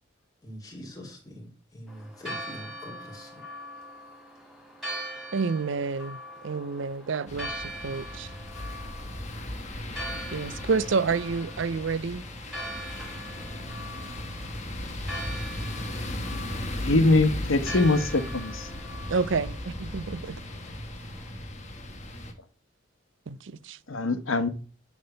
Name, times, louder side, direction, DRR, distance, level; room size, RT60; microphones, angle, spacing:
voice 1, 0.4-3.4, equal, 20° left, 2.9 m, -43 dB
Church bell, 1.9-21.3, equal, ahead, 3.6 m, -42 dB
voice 2, 5.3-6.2 6.4-8.3 10.3-12.2 19.1-20.4 23.3-23.8, right 4 dB, 70° right, 0.5 m, -29 dB
sound 1, 7.3-22.3, left 1 dB, 35° left, 1.2 m, -36 dB
voice 3, 16.8-18.7 23.9-24.5, left 2 dB, 85° left, 1.1 m, -23 dB
10.5 x 3.6 x 6.8 m
head